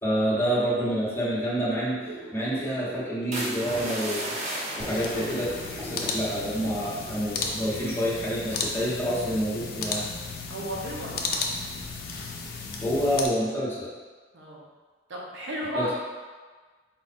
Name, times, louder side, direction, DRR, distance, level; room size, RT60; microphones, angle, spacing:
voice 1, 0.0-4.4 4.8-10.0 12.8-13.9 15.7-15.9, equal, 15° left, -8 dB, 1.0 m, -28 dB
sound 1, 2.0-7.4, right 1 dB, 85° right, 1.1 m, -42 dB
sound 2, 3.3-7.7 8.2-8.5, right 1 dB, 40° right, 1.0 m, -36 dB
sound 3, 4.8-13.3, left 4 dB, 55° left, 0.5 m, -34 dB
voice 2, 10.5-11.4 14.3-14.6 15.1-15.9, equal, 70° right, -3 dB, 0.8 m, -34 dB
4.2 x 2.5 x 4.2 m, 1.4 s
head